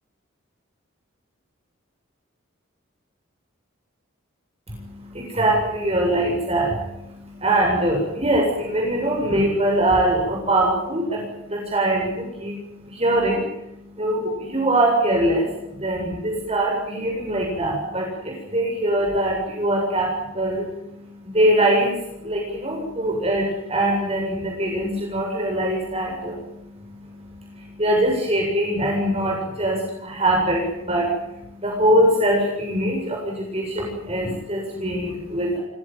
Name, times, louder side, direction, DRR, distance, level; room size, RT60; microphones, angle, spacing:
voice 1, 4.7-35.6, right 1 dB, 30° right, -1 dB, 7.6 m, -23 dB
28.0 x 17.5 x 9.6 m, 0.86 s
head